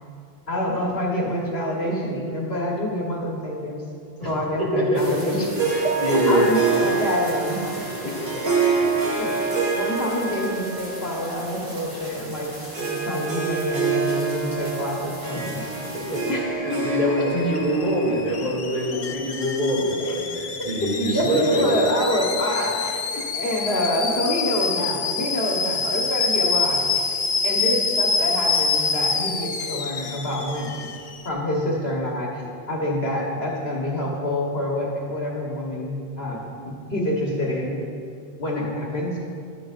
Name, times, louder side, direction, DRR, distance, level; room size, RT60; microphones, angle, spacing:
voice 1, 0.5-3.8 4.2-5.5 5.8-7.6 9.2-9.3 9.7-15.6 16.3-16.4 20.1-20.2 20.6-26.9 27.4-30.9 31.2-37.8 38.4-39.2, left 1 dB, 80° left, -2 dB, 1.6 m, -27 dB
voice 2, 4.6-6.9 7.9-9.4 15.3-15.4 15.8-21.8 27.5-27.6, equal, 50° right, -5 dB, 2.5 m, -25 dB
sound 1, 4.9-16.3, equal, 20° right, 2.2 m, -40 dB
Harp, 5.6-19.2, right 4 dB, 85° right, 1.9 m, -27 dB
Alarm / Boiling, 16.4-31.3, left 4 dB, 45° left, 0.6 m, -27 dB
12.0 x 10.0 x 2.5 m, 2.4 s
omnidirectional pair, 1.0 m